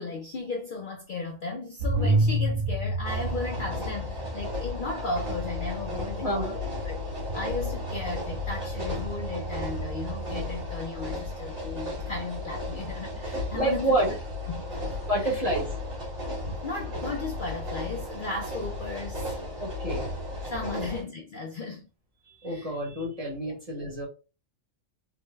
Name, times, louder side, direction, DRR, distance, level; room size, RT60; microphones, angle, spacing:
voice 1, 0.0-6.5 6.8-7.0 7.3-14.0 14.5-14.6 15.2-15.4 16.5-19.3 20.5-21.9 22.5-22.7 23.5-23.6, left 3 dB, 55° left, 0.6 m, -35 dB
sound 1, 1.8-10.3, right 1 dB, 85° right, 1.2 m, -31 dB
sound 2, 3.0-21.0, left 2 dB, 65° right, 2.2 m, -34 dB
voice 2, 6.2-6.5 13.5-14.1 15.0-15.7 19.6-20.1 20.8-20.9 22.3-24.1, right 1 dB, 30° right, 1.2 m, -28 dB
3.8 x 2.1 x 3.2 m
omnidirectional pair, 1.3 m